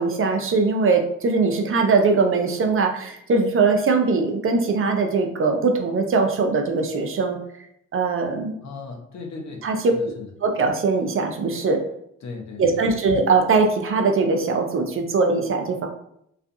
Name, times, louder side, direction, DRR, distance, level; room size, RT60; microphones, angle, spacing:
voice 1, 0.0-7.4 7.9-8.6 9.6-9.8 10.4-11.8 12.6-15.9, right 4 dB, 40° right, 4 dB, 0.6 m, -21 dB
voice 2, 8.6-10.3 12.2-13.0, left 4 dB, 55° left, 2 dB, 0.7 m, -37 dB
2.4 x 2.3 x 2.6 m, 0.73 s
supercardioid pair, 55°, 33 cm